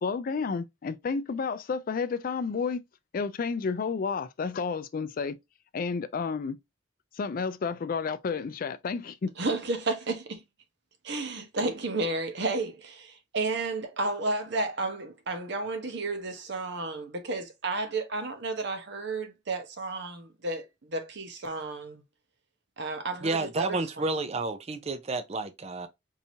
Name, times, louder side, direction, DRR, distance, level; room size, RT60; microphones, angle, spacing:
voice 1, 0.0-2.8 3.1-5.4 5.7-6.6 7.2-9.3, left 5 dB, 45° left, 0.4 m, -31 dB
voice 2, 9.4-10.4 11.0-22.0 22.8-23.8, right 3 dB, 60° right, 1.0 m, -32 dB
voice 3, 23.2-25.9, right 3 dB, 35° right, 0.5 m, -30 dB
4.6 x 2.8 x 2.7 m
head